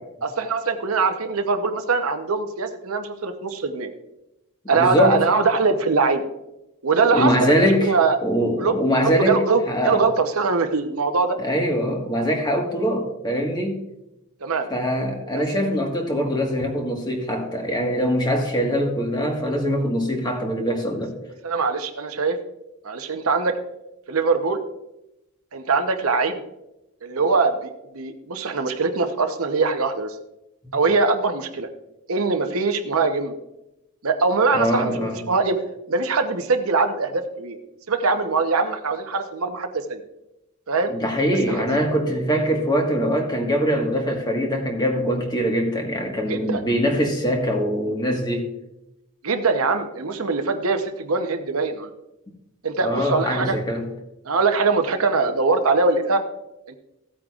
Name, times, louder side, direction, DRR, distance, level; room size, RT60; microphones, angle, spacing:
voice 1, 0.2-3.9 4.7-6.3 6.8-8.2 8.6-11.4 14.4-14.7 15.3-15.4 21.4-22.4 22.8-23.5 24.1-24.6 25.5-26.4 27.0-27.7 27.9-30.1 30.7-31.7 32.1-33.3 34.0-35.6 35.9-37.6 37.9-40.0 40.7-40.9 41.5-41.8 46.3-46.6 49.2-51.9 52.6-53.6 54.2-56.2 56.7-56.8, right 4 dB, 80° right, 7 dB, 0.9 m, -22 dB
voice 2, 4.7-5.2 7.1-7.9 8.2-9.4 9.7-10.0 11.4-13.8 14.7-21.1 34.5-35.2 40.9-48.5 52.8-53.9, equal, 20° left, 2 dB, 1.5 m, -23 dB
15.0 x 8.7 x 2.5 m, 0.89 s
head